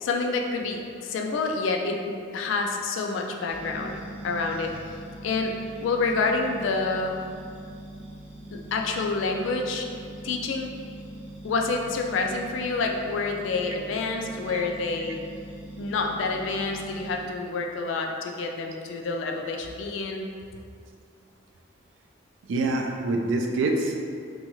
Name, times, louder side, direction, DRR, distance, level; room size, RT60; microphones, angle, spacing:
voice 1, 0.0-4.0 4.2-4.9 5.2-7.2 8.5-10.7 11.4-15.2 15.8-20.3, left 3 dB, 75° left, 2 dB, 0.3 m, -28 dB
sound 1, 3.5-17.2, right 1 dB, 10° right, 0.5 m, -42 dB
voice 2, 22.5-24.0, right 2 dB, 70° right, 2 dB, 0.3 m, -26 dB
2.7 x 2.3 x 2.9 m, 2.4 s
head